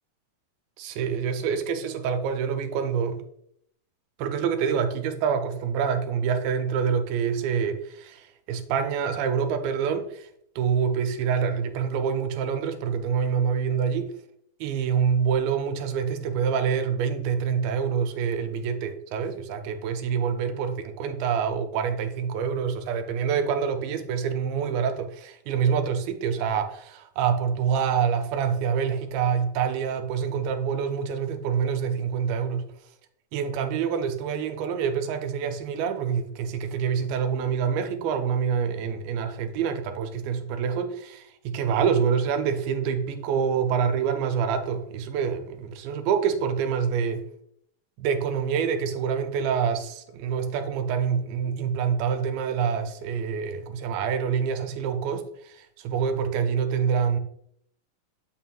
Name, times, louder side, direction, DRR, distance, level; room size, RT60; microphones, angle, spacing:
voice 1, 0.8-3.2 4.2-10.3 10.6-14.1 14.6-32.6 33.3-47.2 48.0-57.2, right 7 dB, 90° right, 7 dB, 2.5 m, -26 dB
7.3 x 6.0 x 2.3 m, 0.70 s
omnidirectional pair, 4.1 m